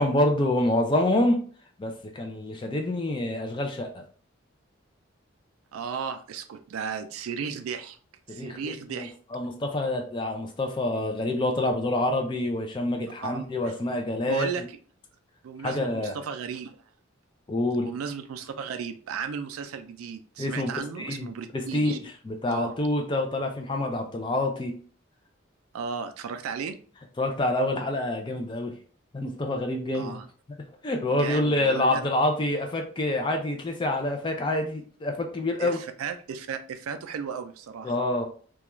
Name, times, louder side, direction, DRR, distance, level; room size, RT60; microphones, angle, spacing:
voice 1, 0.0-1.4 1.8-4.0 8.3-14.5 15.6-16.2 17.5-17.9 20.4-24.7 27.2-28.7 29.1-30.2 30.8-35.8 37.8-38.3, left 1 dB, 20° left, 4 dB, 0.3 m, -27 dB
voice 2, 5.7-8.0 8.3-9.2 13.2-13.7 14.2-14.6 15.4-16.8 17.8-22.0 22.5-22.7 25.7-26.8 29.9-30.3 31.1-32.0 35.6-37.9, right 6 dB, 90° right, 9 dB, 0.3 m, -35 dB
2.4 x 2.2 x 2.9 m, 0.43 s
head